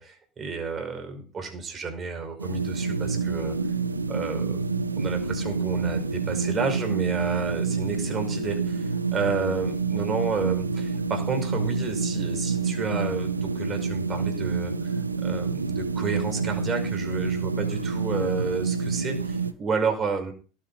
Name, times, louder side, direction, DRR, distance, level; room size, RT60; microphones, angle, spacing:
voice 1, 0.0-3.6 4.1-4.6 5.0-20.3, right 5 dB, 25° right, 5 dB, 5.1 m, -31 dB
sound 1, 2.4-19.5, right 4 dB, 85° right, 1.0 m, -28 dB
18.0 x 7.5 x 5.6 m, 0.36 s
figure-of-eight pair, 75°, 0 cm